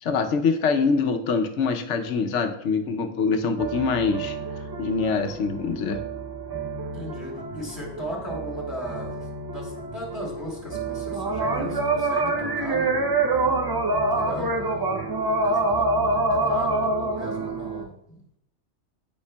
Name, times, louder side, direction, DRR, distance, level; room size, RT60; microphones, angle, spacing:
voice 1, 0.0-4.4 4.8-6.0, left 5 dB, 80° left, 6 dB, 1.0 m, -24 dB
sound 1, 3.6-17.8, right 2 dB, 35° right, 0.3 m, -27 dB
voice 2, 6.9-13.1 13.9-15.1 15.4-18.4, equal, 20° left, -3 dB, 2.3 m, -37 dB
9.7 x 5.2 x 2.2 m, 0.75 s
omnidirectional pair, 1.2 m